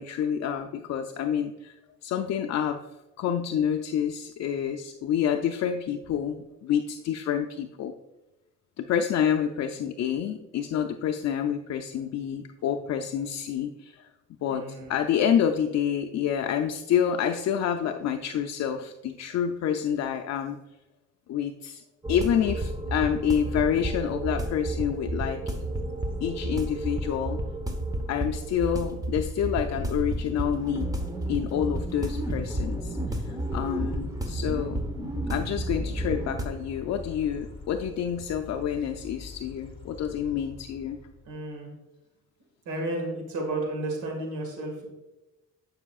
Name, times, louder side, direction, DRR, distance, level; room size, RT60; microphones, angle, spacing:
voice 1, 0.0-1.7 2.0-2.8 3.2-7.9 8.8-14.1 14.4-20.6 21.3-21.8 22.1-25.6 26.2-27.4 28.1-30.9 31.3-33.0 33.2-34.8 35.3-41.0, left 8 dB, 60° left, 6 dB, 0.5 m, -28 dB
voice 2, 14.5-14.9 41.3-41.7 42.7-44.8, right 2 dB, 80° right, 1 dB, 1.9 m, -32 dB
sound 1, 22.0-36.4, right 1 dB, 10° right, 1.0 m, -31 dB
sound 2, 23.9-41.4, left 4 dB, 20° left, 1.5 m, -45 dB
9.8 x 5.6 x 2.4 m, 1.0 s
cardioid pair, 90°, 30 cm